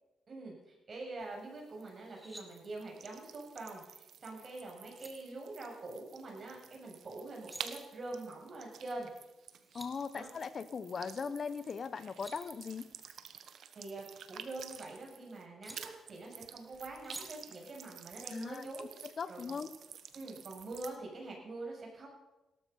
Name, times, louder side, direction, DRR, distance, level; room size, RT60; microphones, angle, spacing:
voice 1, 0.3-9.1 10.1-10.3 13.7-18.9 19.3-19.6 20.1-22.1, right 2 dB, 45° right, -1 dB, 7.5 m, -45 dB
sound 1, 1.2-15.4 15.7-21.0, right 8 dB, 70° right, 1.2 m, -51 dB
sound 2, 2.0-2.5 4.5-4.6 4.9-5.1 7.2-7.6 9.3-9.4 9.6-9.9 11.8-12.4 13.9-14.9 15.6-15.8 17.0-17.2, right 1 dB, 15° right, 2.9 m, -51 dB
voice 2, 9.7-12.9 18.3-19.7, left 5 dB, 50° left, 14 dB, 1.0 m, -39 dB
17.5 x 13.0 x 5.6 m, 0.99 s
cardioid pair, 70°, 0 cm